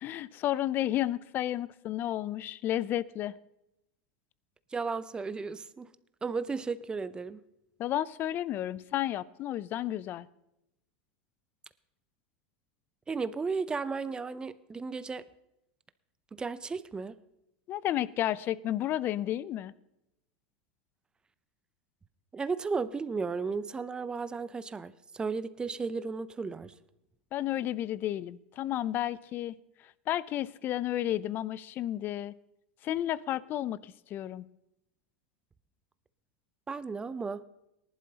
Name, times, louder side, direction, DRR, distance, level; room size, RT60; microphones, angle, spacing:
voice 1, 0.0-3.3 7.8-10.3 17.7-19.7 27.3-29.5 30.1-32.3 32.8-34.4, left 13 dB, 40° left, 20 dB, 0.4 m, -32 dB
voice 2, 4.7-5.9 6.2-7.4 13.1-15.2 16.4-17.2 22.3-26.7 36.7-37.4, right 4 dB, 15° right, 15 dB, 0.5 m, -34 dB
19.0 x 11.0 x 2.8 m, 0.87 s
supercardioid pair, 115°, 6 cm